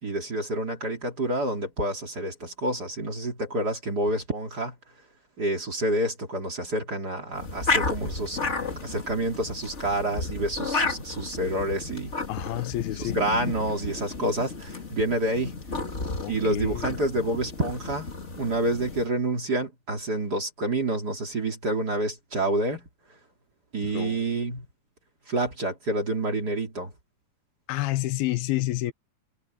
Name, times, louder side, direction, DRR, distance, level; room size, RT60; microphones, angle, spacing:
voice 1, 0.0-4.7 5.4-8.4 8.8-12.1 13.0-15.6 16.3-18.1 18.4-22.9 23.7-24.6 25.3-26.9, right 1 dB, 30° right, 2.9 m, -28 dB
sound 1, 7.3-19.1, left 3 dB, 25° left, 1.8 m, -33 dB
voice 2, 12.3-13.2 16.2-17.0 23.8-24.2 27.7-28.9, left 16 dB, 90° left, 2.8 m, -29 dB
omnidirectional pair, 4.3 m